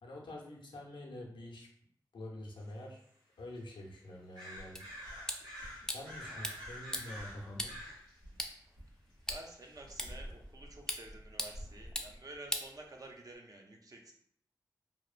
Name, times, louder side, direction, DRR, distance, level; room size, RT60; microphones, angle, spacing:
voice 1, 0.0-1.7 2.1-3.0 3.4-4.8 5.9-7.7, left 1 dB, 85° left, -1 dB, 0.5 m, -46 dB
sound 1, 2.6-2.7 3.0-3.1 3.5-3.6 4.3-8.2 9.3-9.9, equal, 70° right, 1.2 m, -48 dB
sound 2, 4.6-12.2, equal, 85° right, 1.0 m, -52 dB
sound 3, 4.8-13.4, left 1 dB, 5° left, 0.4 m, -43 dB
voice 2, 9.3-14.1, right 2 dB, 50° right, 2 dB, 0.5 m, -51 dB
2.7 x 2.1 x 2.4 m, 0.67 s
cardioid pair, 45°, 8 cm